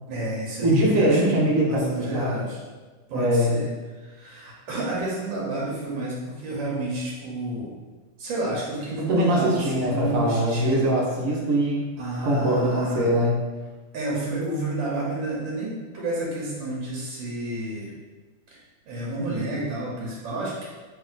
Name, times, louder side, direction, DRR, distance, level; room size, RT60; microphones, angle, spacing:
voice 1, 0.1-2.6 3.1-3.7 4.0-7.7 8.2-10.9 12.0-13.2 13.9-17.9 18.5-18.6 18.9-20.6, right 2 dB, 85° right, -4 dB, 1.6 m, -30 dB
voice 2, 0.6-2.4 3.1-3.5 8.9-11.8 12.2-13.4, right 1 dB, 55° right, -4 dB, 1.1 m, -22 dB
3.4 x 3.0 x 3.8 m, 1.3 s
omnidirectional pair, 2.0 m